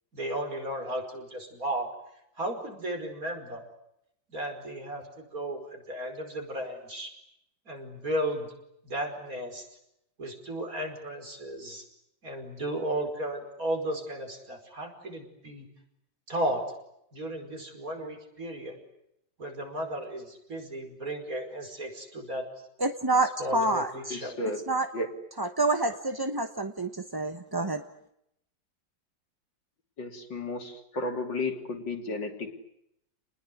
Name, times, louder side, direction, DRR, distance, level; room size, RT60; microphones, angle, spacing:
voice 1, 0.1-1.9 2.4-3.6 4.3-7.1 7.7-8.5 8.8-9.6 10.2-11.8 12.2-15.7 16.3-16.6 17.1-18.8 19.4-22.4 23.4-24.3, right 1 dB, 45° right, 4 dB, 5.6 m, -34 dB
voice 2, 22.8-24.1 24.7-24.9 25.4-27.8, right 2 dB, 20° right, 7 dB, 0.7 m, -28 dB
voice 3, 24.1-24.6 24.9-25.1 30.0-32.5, left 2 dB, 65° left, 4 dB, 3.8 m, -33 dB
29.5 x 20.5 x 9.7 m, 0.79 s
omnidirectional pair, 2.1 m